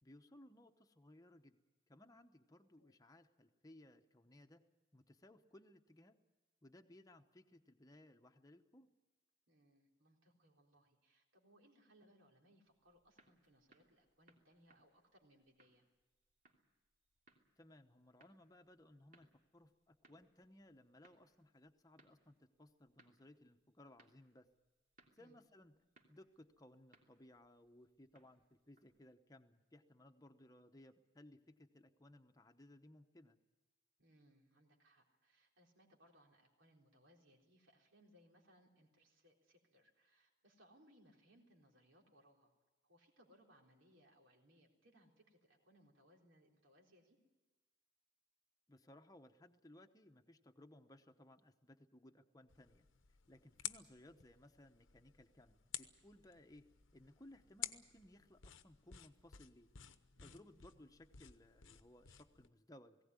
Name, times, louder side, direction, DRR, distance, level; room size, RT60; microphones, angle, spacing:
voice 1, 0.0-1.6 1.9-4.6 4.9-6.2 6.6-8.9 17.6-24.5 25.1-25.8 26.1-33.4 48.7-52.9 53.3-56.6 56.9-59.7 60.2-63.0, left 1 dB, 20° left, 6 dB, 1.0 m, -62 dB
voice 2, 9.5-15.8 25.2-25.4 34.0-42.5 42.8-47.2 60.2-60.5, equal, 80° right, 0 dB, 3.9 m, -69 dB
sound 1, 12.6-29.1, right 2 dB, 45° right, 2.9 m, -74 dB
sound 2, 52.5-62.5, left 11 dB, 85° left, 0.9 m, -53 dB
19.0 x 17.0 x 9.7 m, 1.1 s
head